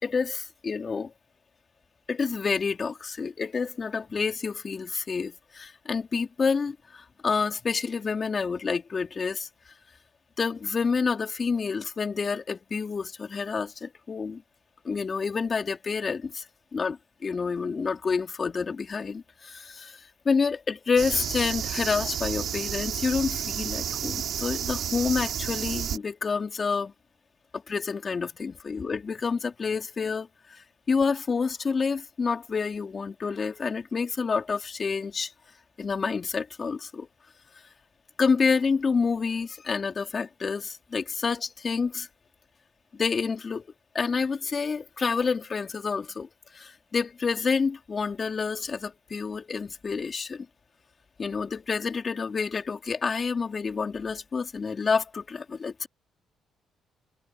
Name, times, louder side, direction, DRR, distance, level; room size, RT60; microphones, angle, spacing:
voice 1, 0.0-1.1 2.1-9.5 10.4-14.4 14.8-16.4 16.7-26.9 27.7-35.3 35.8-37.1 38.2-42.1 42.9-43.6 43.9-46.3 46.5-50.5 51.2-55.9, left 5 dB, 40° left, 3.4 m, -28 dB
sound 1, 21.0-26.0, right 9 dB, 70° right, 5.0 m, -31 dB
cardioid pair, 90°, 0 cm